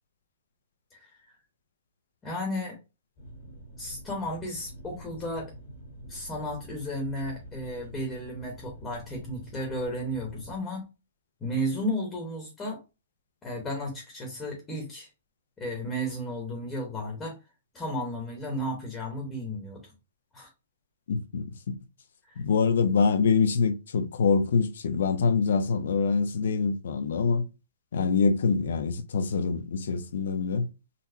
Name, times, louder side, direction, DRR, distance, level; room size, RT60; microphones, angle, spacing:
voice 1, 0.9-1.3 2.2-2.8 3.8-5.5 6.1-10.8 11.4-12.8 13.4-15.1 15.6-17.3 17.7-19.9 20.3-20.5 22.2-22.4, equal, 15° left, 1.1 m, -33 dB
sound 1, 3.2-10.6, equal, 50° left, 1.2 m, -46 dB
voice 2, 21.1-21.7 22.4-27.4 27.9-30.7, left 5 dB, 70° left, 0.6 m, -25 dB
4.0 x 2.1 x 2.7 m
hypercardioid pair, 160°, 0 cm